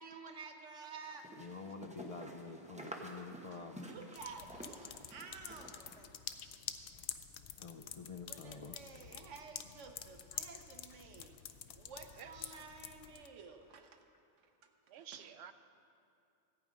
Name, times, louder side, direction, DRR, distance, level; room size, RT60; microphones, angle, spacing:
voice 1, 0.0-1.3 3.5-6.0 8.0-11.4 11.7-14.0, right 5 dB, 90° right, 5 dB, 1.2 m, -52 dB
sound 1, 1.0-6.0, right 1 dB, 5° right, 0.8 m, -50 dB
voice 2, 1.4-4.0 6.0-6.2 7.6-8.9 10.3-10.4, left 4 dB, 50° left, 5 dB, 0.4 m, -48 dB
sound 2, 4.1-13.3, left 9 dB, 70° left, 0.8 m, -48 dB
voice 3, 12.2-12.7 14.9-15.5, right 8 dB, 70° right, 8 dB, 0.9 m, -52 dB
14.5 x 8.7 x 5.1 m, 2.5 s
omnidirectional pair, 1.2 m